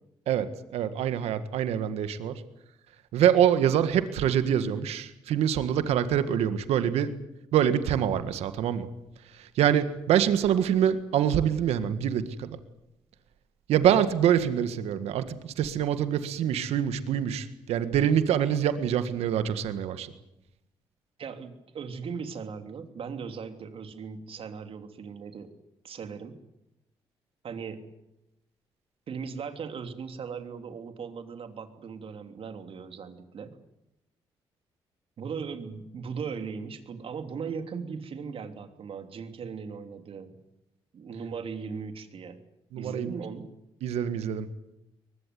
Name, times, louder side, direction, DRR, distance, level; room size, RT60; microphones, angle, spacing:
voice 1, 0.3-2.4 3.1-7.1 7.5-8.9 9.3-12.6 13.7-20.1 42.7-43.2 43.8-44.5, right 9 dB, 80° right, 11 dB, 1.8 m, -25 dB
voice 2, 21.2-25.5 25.8-26.4 27.4-27.8 29.1-33.6 35.2-40.3 40.9-42.4 42.8-43.5, right 6 dB, 60° right, 8 dB, 3.0 m, -38 dB
23.0 x 20.5 x 9.5 m, 0.88 s
supercardioid pair, 55°, 11 cm